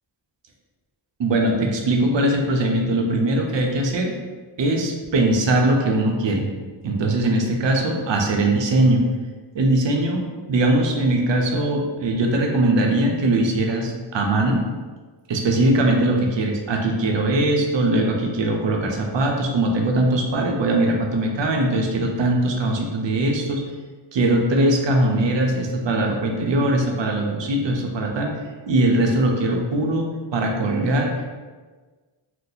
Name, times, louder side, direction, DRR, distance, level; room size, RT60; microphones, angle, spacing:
voice 1, 1.2-4.1 4.6-6.5 6.8-9.0 9.5-14.6 15.3-23.6 24.1-28.3 28.7-31.3, right 1 dB, 70° right, 1 dB, 0.6 m, -21 dB
2.7 x 2.0 x 3.9 m, 1.4 s
wide cardioid pair, 85°, 45 cm